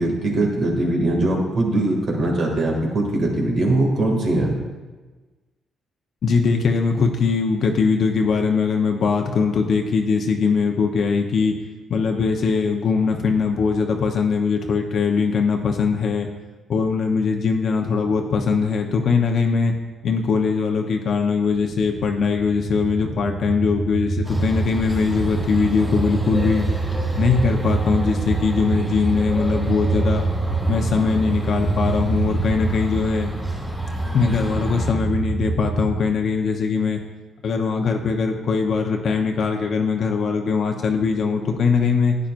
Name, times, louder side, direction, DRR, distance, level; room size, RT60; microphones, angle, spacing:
voice 1, 0.0-4.6, right 2 dB, 60° right, 0 dB, 2.2 m, -21 dB
voice 2, 6.2-11.6 11.9-16.3 16.7-19.7 20.0-26.7 27.2-30.2 30.7-33.3 34.1-37.0 37.4-42.2, left 5 dB, 60° left, 3 dB, 0.8 m, -21 dB
sound 1, 21.5-36.0, right 3 dB, 25° right, 2.9 m, -26 dB
sound 2, 24.2-34.9, equal, 5° right, 2.5 m, -32 dB
11.5 x 9.0 x 2.5 m, 1.3 s
cardioid pair, 90°, 0 cm